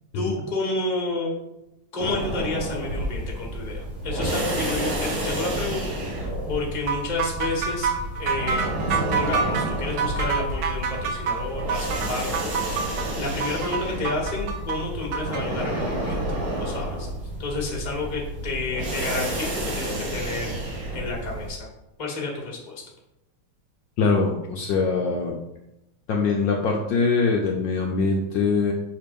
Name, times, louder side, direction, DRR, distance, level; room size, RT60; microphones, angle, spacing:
voice 1, 0.1-1.4 1.9-6.0 6.5-7.9 8.2-17.1 17.4-21.7 22.0-22.8, left 3 dB, 25° left, -2 dB, 1.2 m, -30 dB
sound 1, 2.0-21.5, right 1 dB, 45° right, 1.5 m, -30 dB
sound 2, 6.9-15.4, right 6 dB, 70° right, 1.3 m, -27 dB
voice 2, 24.0-25.4 26.1-28.7, left 4 dB, 70° left, 0 dB, 1.2 m, -23 dB
5.8 x 3.3 x 5.2 m, 0.90 s
omnidirectional pair, 2.3 m